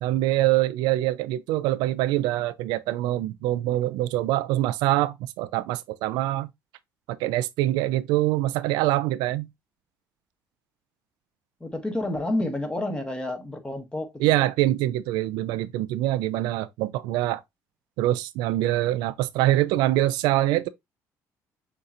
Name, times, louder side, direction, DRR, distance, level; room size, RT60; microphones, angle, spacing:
voice 1, 0.0-6.5 7.1-9.5 14.2-17.4 18.0-20.7, right 15 dB, 90° right, 0.4 m, -24 dB
voice 2, 11.6-14.3, left 1 dB, 15° left, 1.3 m, -29 dB
6.6 x 2.9 x 2.5 m
cardioid pair, 100°, 7 cm